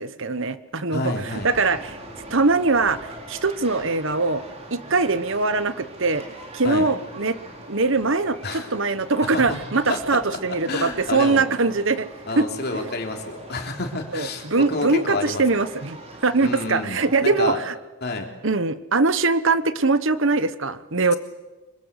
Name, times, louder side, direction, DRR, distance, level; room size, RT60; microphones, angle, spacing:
voice 1, 0.0-2.0 2.3-4.4 4.7-6.2 6.5-7.4 7.7-12.1 12.3-12.5 12.7-12.8 14.1-17.7 18.4-21.1, right 3 dB, 55° right, 13 dB, 1.2 m, -22 dB
voice 2, 0.9-1.5 6.6-6.9 8.4-8.7 9.3-9.6 9.8-10.2 10.7-11.5 12.3-15.4 16.4-17.6 18.0-18.3, left 2 dB, 45° left, 3 dB, 3.3 m, -29 dB
sound 1, 1.2-17.2, right 1 dB, 30° right, 4.4 m, -42 dB
25.5 x 23.5 x 8.3 m, 1.2 s
head